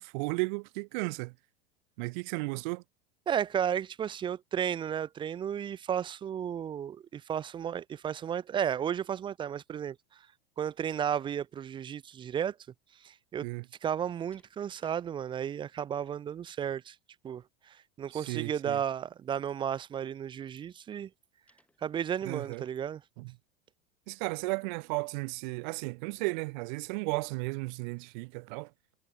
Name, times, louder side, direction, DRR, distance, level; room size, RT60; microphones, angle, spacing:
voice 1, 0.0-1.3 2.0-2.8 13.4-13.6 18.1-18.8 22.2-22.6 23.2-23.3 24.1-28.7, right 29 dB, 50° right, 0.8 m, -34 dB
voice 2, 3.3-10.0 10.6-12.6 13.0-13.5 13.8-17.0 17.2-21.1 21.8-23.0, right 9 dB, 15° right, 0.4 m, -33 dB
Slam, 14.3-15.1 15.4-15.8 21.5-22.8, left 1 dB, 5° left, 6.7 m, -67 dB
figure-of-eight pair, 85°, 31 cm